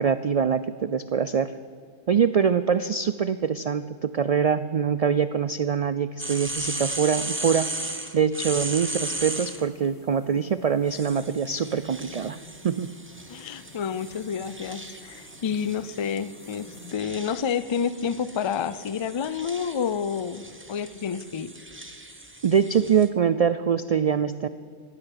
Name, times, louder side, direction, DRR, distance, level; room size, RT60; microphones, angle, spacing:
voice 1, 0.0-1.5 2.1-7.7 8.1-12.4 12.6-12.9 22.4-24.5, right 7 dB, 80° right, 13 dB, 0.3 m, -24 dB
sound 1, 6.2-9.6 10.9-23.1, right 1 dB, 10° right, 0.9 m, -37 dB
sound 2, 9.3-16.9, left 1 dB, 70° left, 4.1 m, -51 dB
voice 2, 13.3-21.5, left 7 dB, 50° left, 16 dB, 0.3 m, -29 dB
14.5 x 10.0 x 9.9 m, 2.1 s
omnidirectional pair, 1.2 m